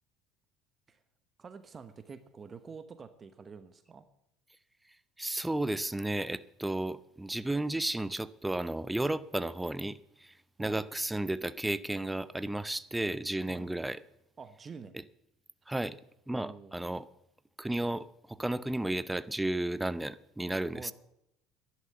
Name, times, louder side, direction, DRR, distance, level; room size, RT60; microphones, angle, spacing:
voice 1, 1.4-4.0 10.6-10.8 13.5-13.7 14.4-15.0 16.3-16.7 20.7-20.9, right 5 dB, 30° right, 1.1 m, -47 dB
voice 2, 5.2-14.0 15.7-16.0 16.3-17.1 17.6-20.9, right 1 dB, 10° right, 0.6 m, -33 dB
11.0 x 11.0 x 6.9 m
hypercardioid pair, 75°, 0 cm